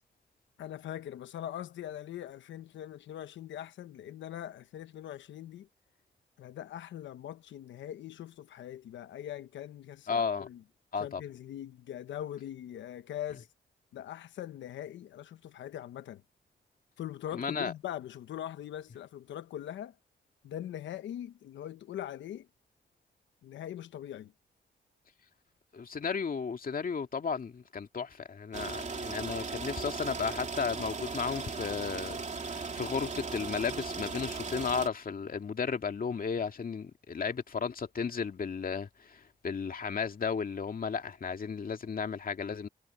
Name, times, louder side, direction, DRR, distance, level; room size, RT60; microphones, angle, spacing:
voice 1, 0.6-5.7 6.4-10.6 11.0-13.5 13.9-16.2 17.0-19.9 20.4-22.5 23.4-24.3 36.4-36.5, left 11 dB, 90° left, 1.0 m, -42 dB
voice 2, 10.1-10.5 10.9-11.2 17.3-17.7 25.7-42.7, left 5 dB, 50° left, 2.2 m, -34 dB
sound 1, 28.5-34.9, right 4 dB, 40° right, 2.7 m, -37 dB
cardioid pair, 65°, 19 cm